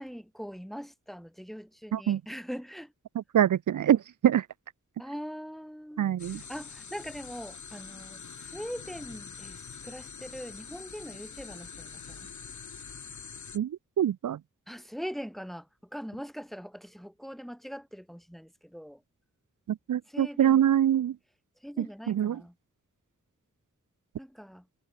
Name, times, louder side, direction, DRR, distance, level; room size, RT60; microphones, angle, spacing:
voice 1, 0.0-2.9 5.0-12.3 14.7-19.0 20.1-20.6 21.6-22.5 24.2-24.7, equal, ahead, 1.9 m, -42 dB
voice 2, 3.2-4.5 6.0-6.4 13.5-14.4 19.7-21.2 21.8-22.4, right 10 dB, 80° right, 0.5 m, -25 dB
sound 1, 6.2-13.6, left 5 dB, 70° left, 2.1 m, -45 dB
wide cardioid pair, 90°, 30 cm